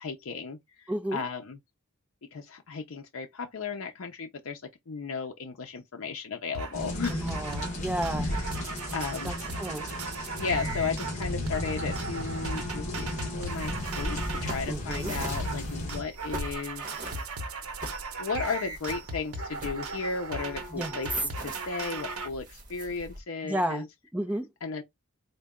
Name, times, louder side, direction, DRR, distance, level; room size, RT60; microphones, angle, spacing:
voice 1, 0.0-1.6 2.3-7.3 8.2-9.3 10.4-16.9 18.2-23.9 24.6-24.8, left 5 dB, 65° left, 0.5 m, -35 dB
voice 2, 0.9-1.2 7.1-8.3 9.2-9.9 14.7-15.1 20.7-20.9 23.4-23.8 24.1-24.5, right 1 dB, 5° right, 0.5 m, -32 dB
sound 1, 6.5-6.8 7.0-7.8 8.0-14.6 14.9-15.6 15.9-22.3, right 3 dB, 75° right, 0.8 m, -37 dB
sound 2, 6.7-16.0, left 1 dB, 30° left, 1.1 m, -35 dB
sound 3, 13.4-23.2, right 1 dB, 35° right, 1.0 m, -42 dB
3.9 x 2.2 x 3.5 m
head